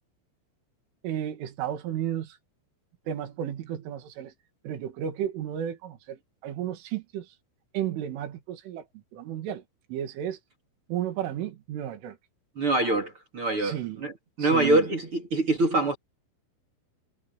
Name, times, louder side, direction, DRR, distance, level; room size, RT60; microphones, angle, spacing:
voice 1, 1.0-2.4 3.1-4.3 4.6-7.3 7.7-9.6 9.9-10.4 10.9-12.2 13.6-14.1 14.4-14.9, right 10 dB, 75° right, 5.0 m, -33 dB
voice 2, 12.6-14.1 14.4-16.0, right 2 dB, 35° right, 2.6 m, -24 dB
omnidirectional pair, 5.7 m